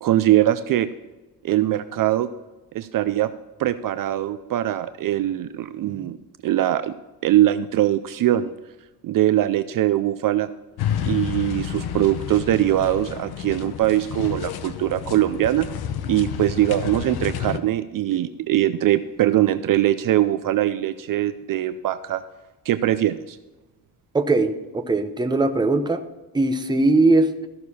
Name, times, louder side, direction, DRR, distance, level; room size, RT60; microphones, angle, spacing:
voice 1, 0.0-0.9 1.4-2.3 2.7-3.3 3.6-6.2 6.4-7.0 7.2-8.5 9.0-10.5 11.0-15.7 16.1-22.2 22.7-23.4, right 13 dB, 50° right, 12 dB, 0.5 m, -21 dB
sound 1, 10.8-17.6, left 9 dB, 65° left, 0.9 m, -30 dB
voice 2, 24.1-26.0 26.3-27.5, right 2 dB, 10° right, 6 dB, 0.7 m, -20 dB
14.0 x 6.6 x 4.2 m, 1.1 s
cardioid pair, 135°, 42 cm